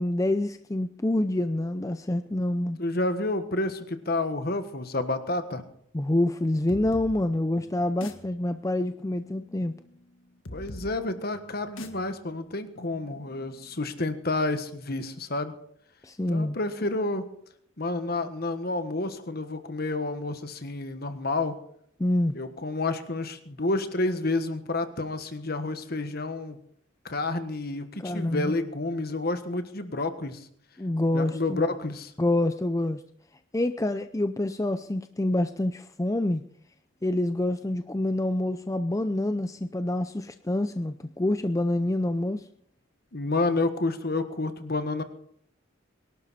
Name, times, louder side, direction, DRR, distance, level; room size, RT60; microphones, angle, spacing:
voice 1, 0.0-2.8 5.9-9.7 16.0-16.6 22.0-22.3 28.0-28.5 30.8-31.7 32.2-33.0 33.5-36.4 37.0-42.5, left 1 dB, 15° left, 9 dB, 0.5 m, -27 dB
voice 2, 2.8-5.6 10.5-15.5 16.3-17.3 17.8-21.6 22.3-26.6 27.0-30.5 31.1-32.1 43.1-45.0, left 2 dB, 50° left, 9 dB, 1.5 m, -29 dB
sound 1, 6.7-14.1, left 1 dB, 80° left, 1.7 m, -46 dB
23.0 x 12.0 x 4.2 m, 0.66 s
head